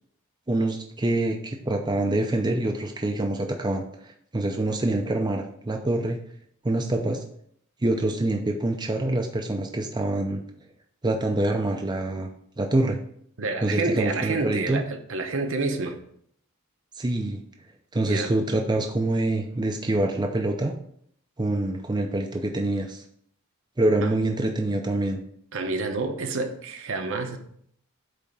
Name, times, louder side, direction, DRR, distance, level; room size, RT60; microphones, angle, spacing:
voice 1, 0.5-6.2 6.6-7.2 7.8-10.4 11.0-12.3 12.6-13.0 13.6-14.8 17.0-17.4 17.9-20.8 21.4-23.0 23.8-25.2, right 2 dB, 20° right, 3 dB, 0.5 m, -25 dB
voice 2, 13.4-16.0 18.0-18.3 24.0-24.1 25.5-27.4, right 3 dB, 60° right, 5 dB, 0.9 m, -28 dB
8.4 x 3.4 x 5.4 m, 0.66 s
head